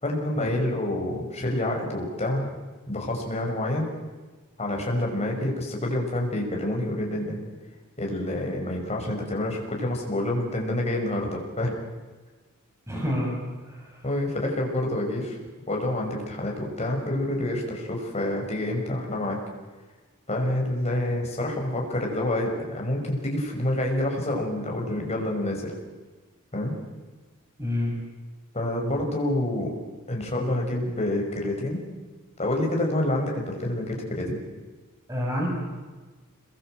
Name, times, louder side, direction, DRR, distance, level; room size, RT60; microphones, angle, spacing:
voice 1, 0.0-2.5 2.9-3.9 4.6-7.4 8.0-11.8 14.0-15.4 15.7-19.4 20.3-25.8 26.5-26.8 28.5-29.7 30.1-31.8 32.4-34.4, left 1 dB, 30° left, 1 dB, 6.0 m, -27 dB
voice 2, 12.9-13.4 13.7-14.0 27.6-27.9 35.1-35.5, left 1 dB, 15° right, -2 dB, 6.7 m, -28 dB
27.0 x 22.0 x 7.9 m, 1.3 s
head